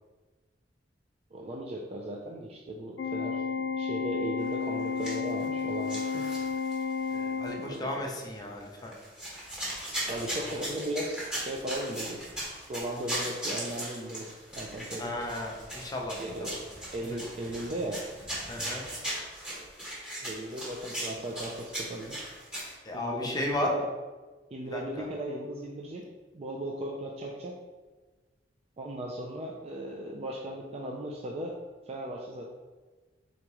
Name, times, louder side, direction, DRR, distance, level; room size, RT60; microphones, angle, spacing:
voice 1, 1.3-3.4 3.7-6.3 7.5-7.9 10.1-12.3 12.7-15.1 16.2-16.5 16.9-18.0 20.2-22.2 22.9-23.8 24.5-26.0 26.3-27.6 28.8-31.6 31.9-32.5, right 1 dB, 35° right, -1 dB, 0.4 m, -37 dB
Organ, 3.0-8.0, left 5 dB, 80° left, 0.3 m, -32 dB
sound 1, 4.8-5.6 5.9-6.9 7.5-7.6 8.8-22.7, right 1 dB, 5° right, 1.0 m, -38 dB
voice 2, 7.1-8.9 10.0-10.1 10.4-10.6 15.0-16.6 18.5-18.8 22.8-23.7 24.7-25.1, left 1 dB, 20° left, 0 dB, 0.6 m, -35 dB
3.9 x 3.5 x 3.0 m, 1.3 s
head